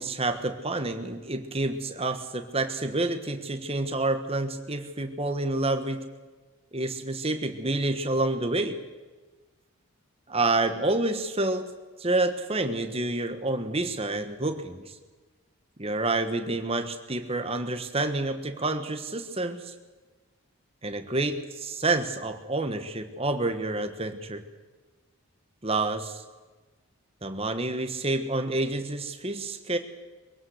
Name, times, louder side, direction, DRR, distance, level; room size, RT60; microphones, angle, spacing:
voice 1, 0.0-6.0 6.7-8.8 10.3-11.7 12.0-14.9 15.8-19.7 20.8-24.4 25.6-26.2 27.2-29.8, right 2 dB, 25° right, 8 dB, 1.3 m, -28 dB
22.5 x 16.5 x 8.0 m, 1.3 s
head